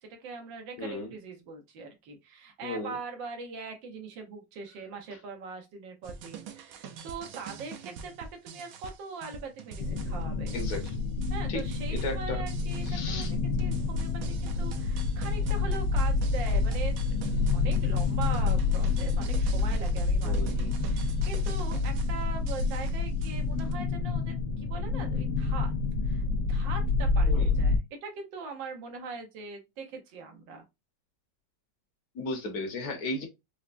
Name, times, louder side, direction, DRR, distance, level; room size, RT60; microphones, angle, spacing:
voice 1, 0.0-10.5 11.3-13.3 13.6-25.7 26.0-26.2 26.5-30.6, right 5 dB, 85° right, 1.6 m, -41 dB
voice 2, 0.8-1.1 2.6-2.9 10.5-10.9 11.5-11.6 11.9-12.4 12.8-13.3 20.2-20.5 27.3-27.5 32.1-33.3, left 2 dB, 60° left, 1.3 m, -35 dB
sound 1, 6.0-23.7, right 5 dB, 70° right, 0.8 m, -44 dB
sound 2, 9.8-27.8, left 3 dB, 80° left, 1.3 m, -28 dB
4.5 x 2.1 x 2.4 m
omnidirectional pair, 2.0 m